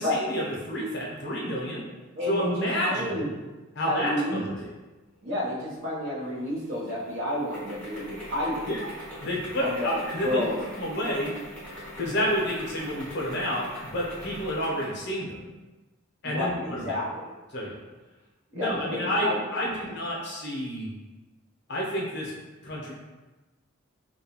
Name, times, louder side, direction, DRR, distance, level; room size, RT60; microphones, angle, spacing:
voice 1, 0.0-1.8 2.2-3.3 3.7-4.7 8.7-8.9 9.2-10.4 10.7-11.3 12.0-15.4 16.2-17.0 17.5-17.8 18.5-20.9 21.7-22.3 22.6-22.9, equal, 50° left, -3 dB, 0.6 m, -30 dB
voice 2, 2.1-3.3 3.8-4.4 5.2-8.7 9.6-10.6 12.1-12.3 16.2-17.2 18.5-19.4, left 1 dB, 60° right, -5 dB, 0.7 m, -30 dB
sound 1, 6.2-15.0, equal, 5° left, 0.6 m, -43 dB
2.7 x 2.3 x 2.8 m, 1.2 s
head